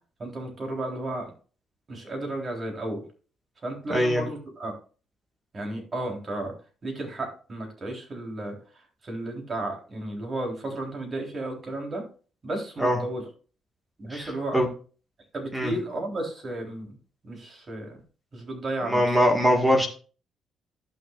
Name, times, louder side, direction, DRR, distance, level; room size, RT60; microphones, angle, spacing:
voice 1, 0.2-1.3 1.9-3.0 3.6-4.7 5.5-6.5 6.8-12.0 12.4-13.3 14.0-14.6 15.3-17.0 17.2-18.0 18.3-19.2, right 1 dB, 35° right, 1 dB, 3.8 m, -33 dB
voice 2, 3.9-4.2 12.8-13.0 14.1-14.3 14.5-14.7 15.5-15.7 18.9-19.9, equal, 10° right, 2 dB, 1.8 m, -21 dB
14.5 x 6.2 x 2.5 m, 0.38 s
cardioid pair, 90°, 0 cm